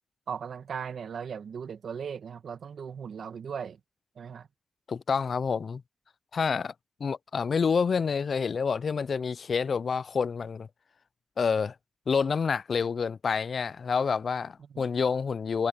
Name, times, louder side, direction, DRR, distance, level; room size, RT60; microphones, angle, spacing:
voice 1, 0.3-3.8 4.2-4.5 14.6-14.9, right 7 dB, 70° right, 1.8 m, -38 dB
voice 2, 4.9-5.8 6.3-6.7 7.0-10.7 11.4-11.7 12.1-15.7, left 5 dB, 60° left, 0.4 m, -28 dB
cardioid pair, 70°, 0 cm